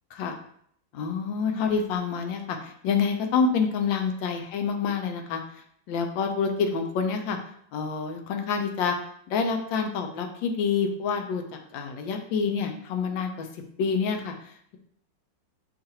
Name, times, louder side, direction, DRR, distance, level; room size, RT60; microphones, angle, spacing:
voice 1, 0.9-5.4 5.9-7.4 7.7-9.0 9.3-11.4 11.7-13.5 13.8-14.8, left 5 dB, 75° left, 4 dB, 1.3 m, -27 dB
6.5 x 2.5 x 2.8 m, 0.66 s
omnidirectional pair, 2.1 m